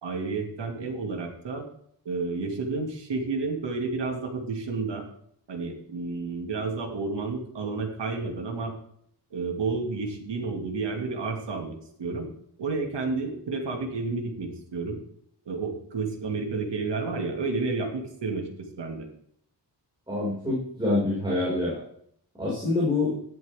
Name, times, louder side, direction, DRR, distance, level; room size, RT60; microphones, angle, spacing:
voice 1, 0.0-1.7 2.0-5.1 5.5-8.7 9.3-12.3 12.6-15.0 15.5-19.1, right 3 dB, 85° right, 3 dB, 2.4 m, -31 dB
voice 2, 20.1-21.8 22.4-23.2, left 2 dB, 10° right, -8 dB, 5.5 m, -26 dB
14.0 x 10.5 x 3.6 m, 0.66 s
wide cardioid pair, 120°, 41 cm